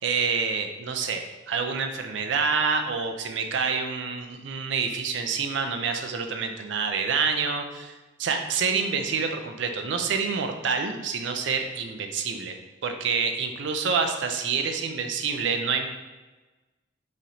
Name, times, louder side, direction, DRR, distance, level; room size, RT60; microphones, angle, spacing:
voice 1, 0.0-7.9 8.2-15.9, right 5 dB, 75° right, 5 dB, 0.4 m, -27 dB
3.1 x 2.8 x 3.8 m, 1.2 s
head